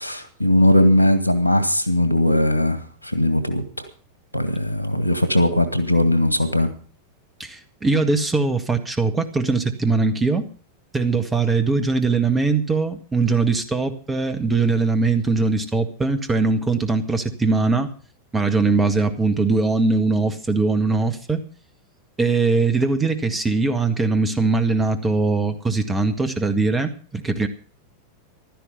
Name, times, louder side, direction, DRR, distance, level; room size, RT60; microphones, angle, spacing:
voice 1, 0.0-3.6 4.3-6.7, left 1 dB, 90° right, 9 dB, 2.1 m, -19 dB
voice 2, 7.4-10.5 10.9-17.9 18.3-21.4 22.2-27.5, right 3 dB, 15° right, 9 dB, 1.9 m, -21 dB
15.5 x 12.5 x 5.5 m, 0.39 s
figure-of-eight pair, 90°, 0 cm